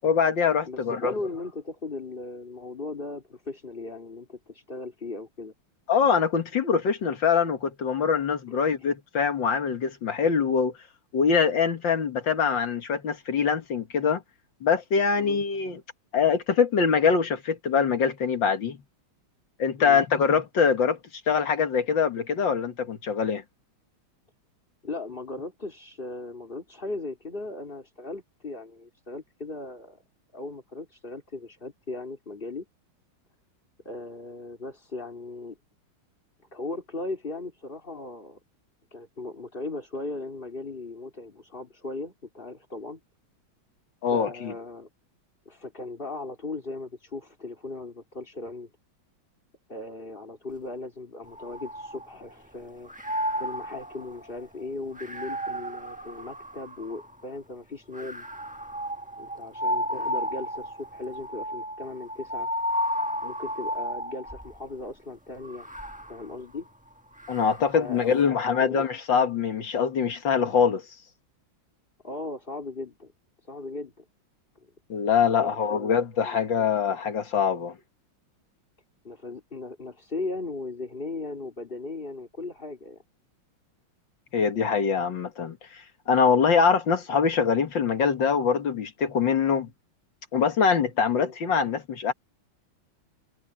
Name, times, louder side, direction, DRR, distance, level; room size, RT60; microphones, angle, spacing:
voice 1, 0.0-1.1 5.9-10.7 11.1-14.2 14.6-15.8 16.1-18.8 19.6-21.0 21.3-23.4 44.0-44.5 67.3-70.8 74.9-77.7 84.3-85.6 86.1-89.7 90.3-92.1, left 6 dB, 65° left, 2.3 m, -23 dB
voice 2, 0.7-5.5 8.5-8.6 15.2-15.4 19.8-20.0 24.8-30.0 30.3-32.7 33.9-35.6 36.5-38.4 38.9-43.0 44.0-44.9 45.5-48.7 49.7-52.9 53.4-58.2 59.2-62.5 63.2-65.7 66.1-66.7 67.7-68.9 72.0-73.1 73.4-74.0 75.3-76.7 79.0-83.0 91.2-91.3, left 2 dB, 25° left, 3.5 m, -37 dB
sound 1, 51.3-52.5 52.9-57.2 57.9-64.6 65.4-68.0, equal, 5° right, 1.0 m, -33 dB
omnidirectional pair, 2.2 m